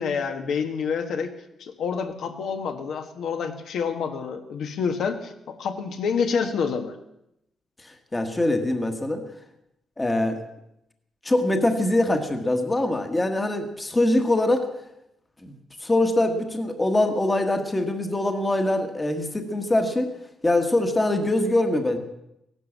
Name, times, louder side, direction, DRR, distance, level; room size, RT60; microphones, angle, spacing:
voice 1, 0.0-1.3 1.6-7.0, left 6 dB, 65° left, 6 dB, 1.4 m, -28 dB
voice 2, 8.1-9.2 10.0-10.4 11.2-14.6 15.4-15.5 15.8-20.1 20.4-22.0, left 1 dB, 15° left, 6 dB, 1.4 m, -23 dB
16.5 x 11.5 x 7.3 m, 0.82 s
cardioid pair, 165°, 0 cm